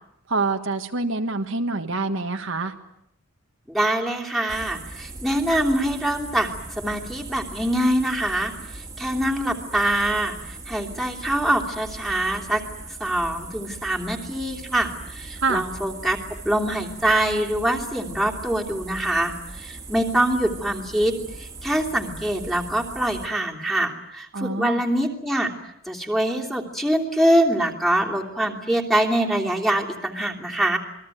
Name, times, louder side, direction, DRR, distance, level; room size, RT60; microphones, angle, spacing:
voice 1, 0.3-2.7 15.4-15.6 24.3-24.8, right 3 dB, 60° right, 6 dB, 1.6 m, -26 dB
voice 2, 3.7-6.5 6.8-12.6 13.0-16.2 16.4-25.5 25.9-30.8, right 1 dB, ahead, -1 dB, 3.1 m, -24 dB
sound 1, 4.5-23.3, right 3 dB, 15° right, 2.4 m, -39 dB
28.0 x 21.5 x 9.2 m, 0.77 s
head